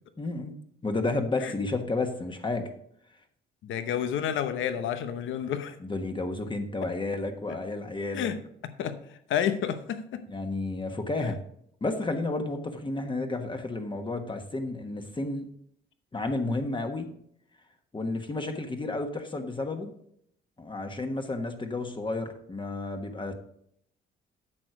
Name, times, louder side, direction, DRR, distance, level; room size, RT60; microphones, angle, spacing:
voice 1, 0.2-0.5 0.8-2.7 5.8-8.3 10.3-11.4 11.8-15.5 16.1-17.1 17.9-19.9 20.6-23.3, left 2 dB, 25° left, 5 dB, 1.4 m, -31 dB
voice 2, 3.6-5.8 7.5-7.6 8.1-9.0 9.3-10.2, left 9 dB, 75° left, 10 dB, 0.9 m, -30 dB
8.9 x 6.4 x 4.9 m, 0.69 s
cardioid pair, 90°, 20 cm